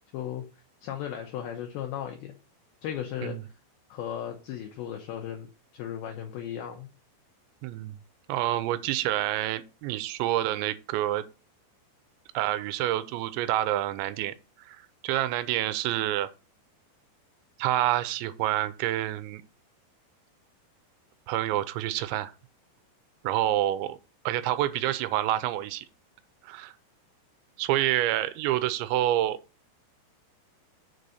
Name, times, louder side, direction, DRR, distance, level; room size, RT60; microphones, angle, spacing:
voice 1, 0.1-0.5 0.8-2.3 2.8-3.4 3.9-6.9, left 10 dB, 75° left, 2.4 m, -36 dB
voice 2, 7.6-8.0 8.3-11.3 12.3-16.3 17.6-19.4 21.3-22.3 23.2-24.0 24.3-25.9 26.4-26.7 27.6-29.4, right 14 dB, 85° right, 2.9 m, -28 dB
6.7 x 4.1 x 6.4 m
omnidirectional pair, 5.2 m